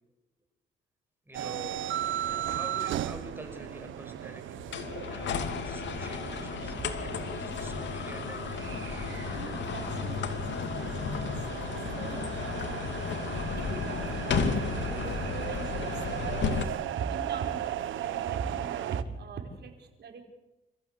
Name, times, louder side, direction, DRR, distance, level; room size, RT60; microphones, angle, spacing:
voice 1, 1.3-1.7 2.3-8.4, right 1 dB, 10° right, 5 dB, 6.2 m, -47 dB
sound 1, 1.3-19.0, right 11 dB, 80° right, 1.2 m, -36 dB
sound 2, 4.5-16.7, left 6 dB, 65° left, 2.6 m, -33 dB
sound 3, 8.9-16.7, left 7 dB, 85° left, 1.7 m, -48 dB
voice 2, 9.3-12.9 13.6-15.8 16.9-20.2, right 5 dB, 60° right, 4 dB, 4.9 m, -41 dB
28.0 x 15.0 x 8.3 m, 1.0 s
cardioid pair, 90°, 20 cm